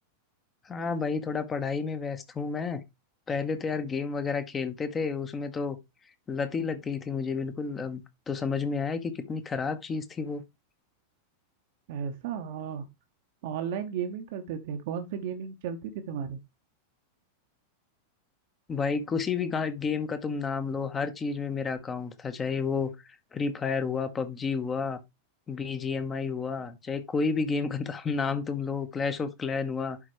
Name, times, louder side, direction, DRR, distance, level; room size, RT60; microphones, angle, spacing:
voice 1, 0.6-2.8 3.3-5.8 6.3-10.4 18.7-22.9 23.3-25.0 25.5-30.0, left 5 dB, 20° left, 1.0 m, -31 dB
voice 2, 11.9-12.9 13.4-16.4, right 7 dB, 50° right, 0.9 m, -34 dB
11.0 x 4.2 x 3.1 m
figure-of-eight pair, 90°, 0 cm